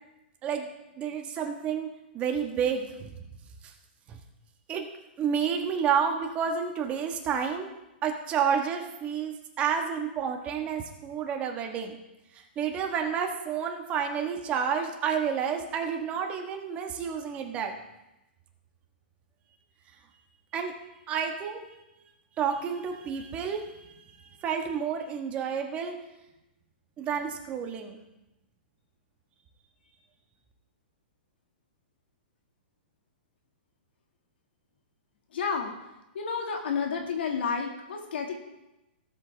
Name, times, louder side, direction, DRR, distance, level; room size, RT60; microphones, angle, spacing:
voice 1, 1.0-1.9 2.1-3.1 4.1-4.2 4.7-4.9 5.2-7.7 8.0-12.0 12.6-17.7 20.5-20.7 21.1-21.6 22.4-23.9 24.4-26.0 27.0-28.0, right 7 dB, 20° right, 3 dB, 1.3 m, -30 dB
voice 2, 35.3-35.7 36.1-38.3, left 5 dB, 75° left, 2 dB, 1.9 m, -30 dB
17.5 x 8.0 x 3.4 m, 0.95 s
hypercardioid pair, 155°, 6 cm